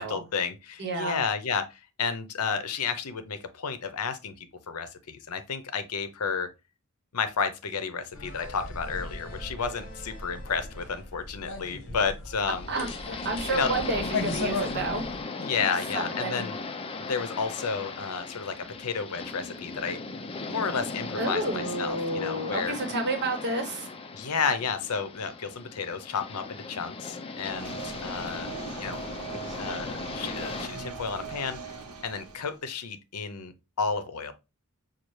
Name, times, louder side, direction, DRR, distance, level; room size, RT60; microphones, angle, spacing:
voice 1, 0.0-6.5 7.1-12.7 13.5-13.7 15.4-16.6 17.1-20.0 20.5-22.7 24.1-28.5 28.8-29.0 29.3-31.7 32.0-33.5 33.8-34.3, left 5 dB, 75° left, 0.6 m, -32 dB
voice 2, 0.8-1.2 12.7-15.0 15.9-16.4 21.2-23.9, right 2 dB, 50° right, 1.1 m, -30 dB
sound 1, 8.1-15.2, left 2 dB, 60° left, 1.1 m, -37 dB
sound 2, 12.5-30.7, left 3 dB, 25° left, 0.4 m, -37 dB
sound 3, 27.4-32.6, right 5 dB, 85° right, 1.0 m, -40 dB
5.7 x 2.4 x 3.1 m
head